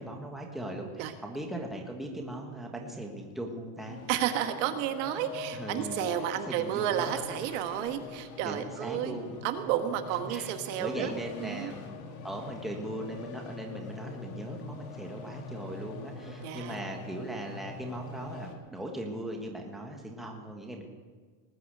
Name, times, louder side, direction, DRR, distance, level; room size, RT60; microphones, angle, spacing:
voice 1, 0.0-4.0 5.5-7.2 8.4-9.4 10.3-10.5 10.8-12.0 12.2-20.8, right 1 dB, ahead, 0 dB, 1.3 m, -39 dB
sound 1, 3.8-18.6, left 5 dB, 75° left, 2.3 m, -44 dB
voice 2, 4.1-9.2 9.4-11.1 11.4-11.7 16.4-16.8, right 11 dB, 55° right, 7 dB, 1.3 m, -31 dB
19.5 x 9.5 x 6.6 m, 1.5 s
cardioid pair, 170°, 42 cm